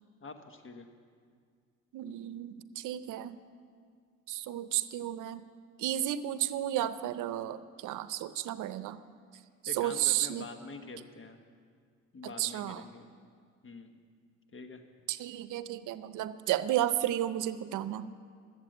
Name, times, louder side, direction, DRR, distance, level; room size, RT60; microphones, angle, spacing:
voice 1, 0.2-0.9 9.7-11.4 12.1-13.1 13.6-14.0 14.5-14.8, left 3 dB, 45° left, 6 dB, 1.3 m, -46 dB
voice 2, 1.9-3.4 4.3-5.5 5.8-9.0 9.6-10.5 12.2-12.9 15.1-18.1, right 12 dB, 85° right, 14 dB, 0.6 m, -33 dB
13.5 x 8.1 x 7.8 m, 2.1 s
cardioid pair, 90°, 30 cm